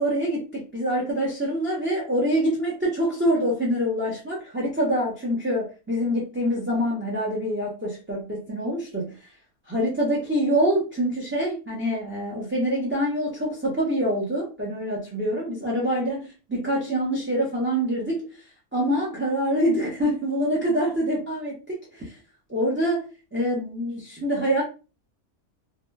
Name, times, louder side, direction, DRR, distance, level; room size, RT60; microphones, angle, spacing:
voice 1, 0.0-9.2 9.7-18.2 18.7-22.2 22.5-24.6, equal, 15° right, -3 dB, 0.4 m, -25 dB
2.8 x 2.3 x 2.2 m, 0.31 s
omnidirectional pair, 1.5 m